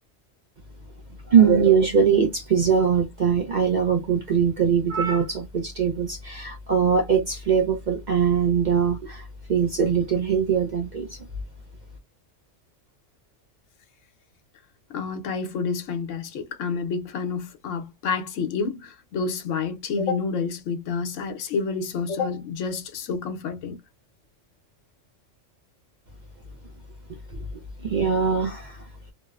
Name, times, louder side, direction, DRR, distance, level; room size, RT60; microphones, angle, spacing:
voice 1, 1.3-11.2 27.8-28.8, right 7 dB, 55° right, 0.5 m, -21 dB
voice 2, 14.9-23.8, left 5 dB, 85° left, 1.0 m, -29 dB
2.8 x 2.0 x 2.3 m
omnidirectional pair, 1.3 m